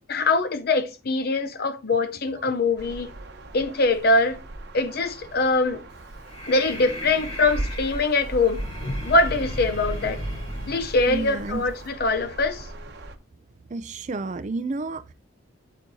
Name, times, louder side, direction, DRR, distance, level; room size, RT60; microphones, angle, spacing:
voice 1, 0.0-3.1 3.5-4.4 4.7-5.8 6.5-10.2 10.7-12.7, left 3 dB, 50° left, 0.6 m, -23 dB
voice 2, 2.4-2.7 11.1-11.7 13.7-15.1, right 3 dB, 35° right, 0.4 m, -31 dB
sound 1, 2.8-13.2, right 1 dB, 50° right, 0.9 m, -39 dB
Breathing, 5.9-11.9, equal, 30° left, 3.0 m, -35 dB
8.4 x 8.4 x 2.7 m
head